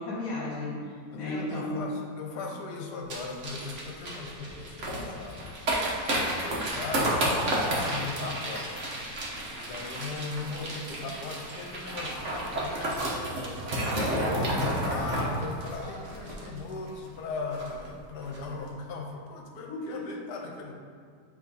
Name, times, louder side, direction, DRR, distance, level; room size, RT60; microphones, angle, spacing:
voice 1, 0.0-1.9 13.8-14.3 19.7-20.1, left 2 dB, 60° left, -5 dB, 1.4 m, -34 dB
voice 2, 1.1-7.2 7.7-8.9 9.5-20.7, left 4 dB, 75° left, 1 dB, 1.2 m, -38 dB
sound 1, 3.1-16.9 17.2-17.3 17.5-17.9 18.2-18.4, right 1 dB, 50° right, 1.2 m, -31 dB
7.7 x 3.2 x 3.9 m, 2.1 s
omnidirectional pair, 1.8 m